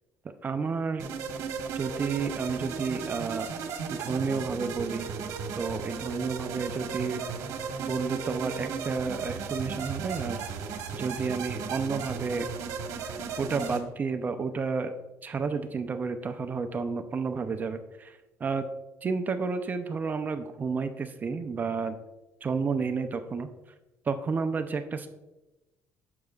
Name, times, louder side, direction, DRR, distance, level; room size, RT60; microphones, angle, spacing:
voice 1, 0.4-1.1 1.7-3.5 3.9-5.1 5.6-7.2 7.8-10.4 10.9-12.5 13.4-14.9 15.2-18.7 19.0-22.0 22.4-23.5 24.1-25.1, right 5 dB, 30° right, 7 dB, 0.5 m, -31 dB
sound 1, 1.0-13.8, right 6 dB, 75° right, 1.2 m, -35 dB
10.5 x 7.6 x 2.4 m, 1.0 s
cardioid pair, 115°, 6 cm